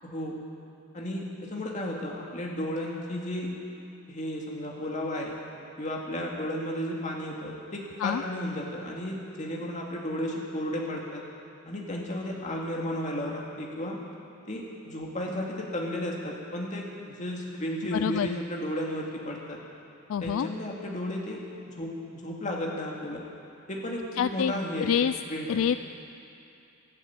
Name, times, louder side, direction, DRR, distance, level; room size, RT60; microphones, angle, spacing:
voice 1, 0.0-0.4 0.9-3.5 4.1-5.3 5.8-11.2 11.7-14.0 14.5-19.6 20.2-23.2 23.7-24.9 25.3-25.7, left 1 dB, 35° left, -2 dB, 2.2 m, -33 dB
voice 2, 17.9-18.3 20.1-20.5 24.2-24.5 24.8-25.1 25.5-25.8, left 8 dB, 65° left, 12 dB, 0.3 m, -26 dB
13.0 x 11.5 x 8.9 m, 2.8 s
head